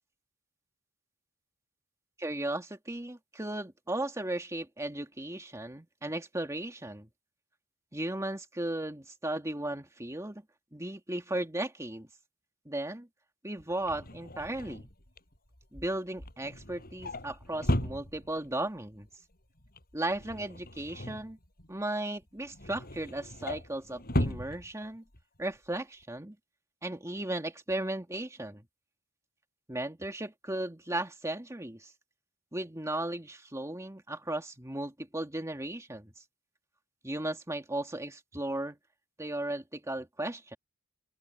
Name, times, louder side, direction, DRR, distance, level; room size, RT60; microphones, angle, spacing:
voice 1, 2.2-7.1 7.9-10.4 10.7-12.1 12.7-13.1 13.4-14.9 15.7-19.1 19.9-21.4 21.7-25.0 25.4-26.4 26.8-28.6 29.7-31.9 32.5-36.1 37.0-38.8 39.2-40.6, right 1 dB, 15° right, 2.2 m, -36 dB
Drawer open or close, 13.6-18.6 19.0-19.3 19.6-21.8 22.2-25.2 25.6-25.8 26.0-26.1, left 1 dB, 45° left, 6.6 m, -36 dB
open air
head